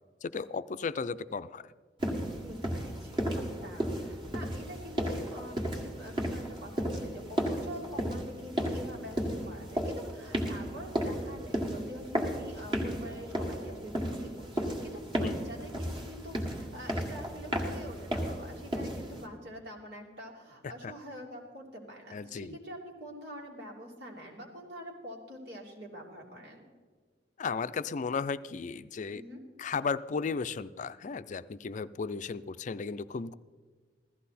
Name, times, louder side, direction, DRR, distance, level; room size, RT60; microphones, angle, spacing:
voice 1, 0.2-1.6 15.2-15.4 20.8-20.9 22.1-22.6 27.4-29.2 29.6-33.3, left 5 dB, 45° left, 14 dB, 0.4 m, -35 dB
sound 1, 2.0-19.3, equal, 30° right, 1.7 m, -34 dB
voice 2, 2.4-26.7 29.1-29.4, equal, 70° right, -1 dB, 2.9 m, -46 dB
16.0 x 13.5 x 4.2 m, 1.5 s
head